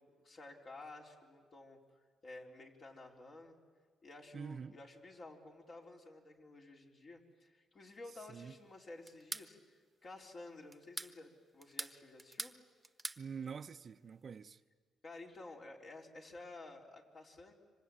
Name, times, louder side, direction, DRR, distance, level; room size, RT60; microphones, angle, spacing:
voice 1, 0.0-1.8 2.2-3.6 4.0-9.6 10.0-12.6 15.0-17.5, left 2 dB, 45° left, 4.2 m, -53 dB
voice 2, 4.3-4.8 8.3-8.5 13.2-14.6, right 6 dB, 45° right, 0.7 m, -46 dB
sound 1, 9.1-9.5 10.7-11.1 11.6-12.6 12.8-13.2, right 2 dB, 15° right, 1.2 m, -43 dB
26.5 x 25.0 x 8.8 m
cardioid pair, 90°, 0 cm